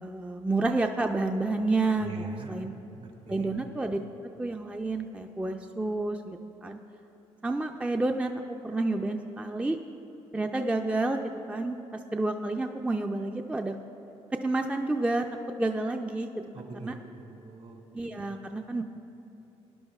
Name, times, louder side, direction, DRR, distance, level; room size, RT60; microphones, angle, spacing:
voice 1, 0.0-2.7 3.3-4.0 4.4-6.8 7.4-9.8 10.3-13.7 14.4-15.3 15.6-16.3 16.8-17.0 17.9-18.8, right 2 dB, 10° right, 4 dB, 0.4 m, -29 dB
voice 2, 2.0-2.7 3.0-3.5 16.5-17.8, right 4 dB, 60° right, 0 dB, 2.2 m, -42 dB
17.5 x 10.5 x 2.3 m, 2.9 s
cardioid pair, 75°, 13 cm